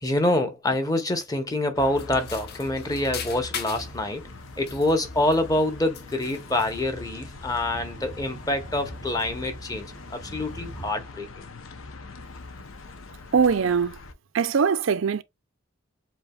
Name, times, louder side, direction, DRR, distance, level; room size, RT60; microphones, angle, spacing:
voice 1, 0.0-4.3 4.6-11.5, left 1 dB, 20° left, 0.9 m, -26 dB
sound 1, 1.7-14.1, left 3 dB, 90° left, 0.7 m, -42 dB
sound 2, 2.0-4.0 4.5-5.6 5.9-6.8, left 7 dB, 50° left, 0.9 m, -38 dB
sound 3, 3.7-10.9, right 1 dB, 70° left, 2.7 m, -45 dB
voice 2, 13.3-14.0 14.3-15.2, right 6 dB, 75° right, 0.5 m, -21 dB
7.3 x 2.9 x 2.3 m
head